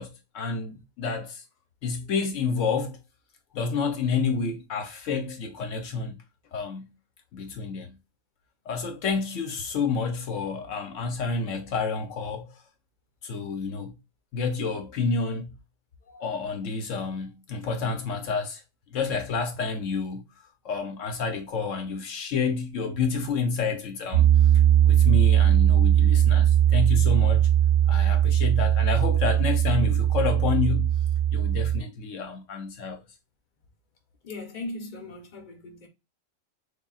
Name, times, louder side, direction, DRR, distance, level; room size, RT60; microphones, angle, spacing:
voice 1, 0.0-1.4 1.8-3.0 3.5-6.2 6.5-6.9 7.3-8.0 8.7-12.5 13.2-14.0 14.3-15.5 16.2-18.6 18.9-20.2 20.6-24.3 24.9-27.5 27.9-30.9 31.3-33.0, left 5 dB, 75° left, 1.0 m, -29 dB
voice 2, 16.0-16.4 34.2-35.9, left 2 dB, 40° left, 1.0 m, -39 dB
Piano, 24.1-31.8, right 11 dB, 60° right, 0.6 m, -20 dB
6.6 x 2.3 x 2.4 m
omnidirectional pair, 1.3 m